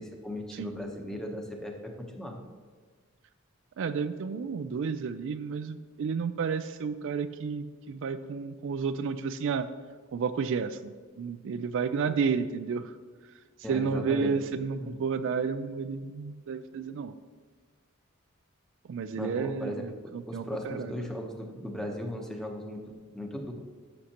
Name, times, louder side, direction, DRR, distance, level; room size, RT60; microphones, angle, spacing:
voice 1, 0.0-2.4 13.6-14.4 14.8-15.0 19.2-22.8 23.1-23.5, left 1 dB, 5° left, 1 dB, 0.9 m, -37 dB
voice 2, 3.8-9.7 10.1-12.9 13.7-17.1 18.9-20.9, right 5 dB, 65° right, 11 dB, 0.4 m, -31 dB
13.0 x 6.4 x 2.9 m, 1.5 s
head